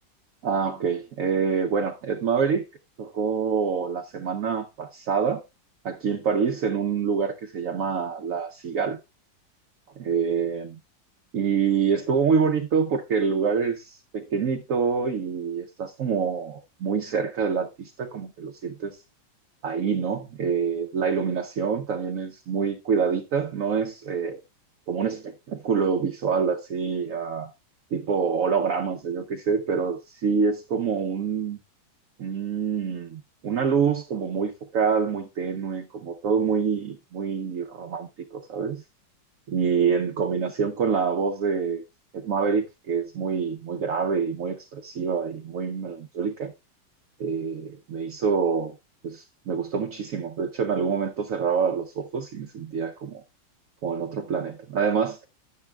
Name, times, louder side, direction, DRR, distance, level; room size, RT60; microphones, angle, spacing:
voice 1, 0.4-2.6 3.0-5.4 5.8-9.0 10.0-10.7 11.3-19.0 19.6-24.4 24.9-27.5 27.9-31.6 32.2-38.8 39.5-41.8 42.1-46.5 47.2-48.7 49.0-53.2 53.8-55.2, right 6 dB, 65° right, 0.9 m, -26 dB
11.5 x 9.5 x 2.3 m
omnidirectional pair, 2.1 m